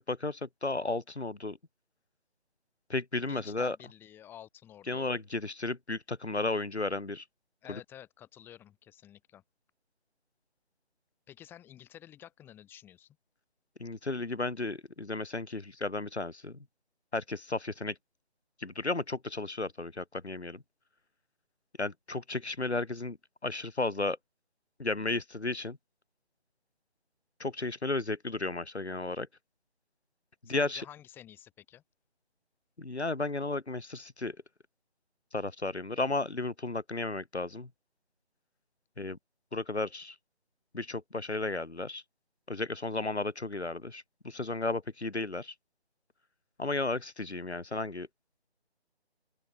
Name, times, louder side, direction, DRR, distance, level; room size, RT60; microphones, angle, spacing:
voice 1, 0.0-1.6 2.9-3.8 4.9-7.2 7.7-7.8 13.8-16.6 17.1-18.0 18.6-20.6 21.8-23.2 23.4-24.2 24.8-25.8 27.4-29.3 30.4-30.8 32.8-34.4 35.3-37.7 39.0-39.2 39.5-40.1 40.7-42.0 42.5-45.5 46.6-48.1, left 2 dB, 85° left, 1.6 m, -34 dB
voice 2, 3.2-5.1 7.6-9.4 11.3-13.2 30.4-31.8, left 11 dB, 5° left, 4.4 m, -51 dB
open air
figure-of-eight pair, 155°, 32 cm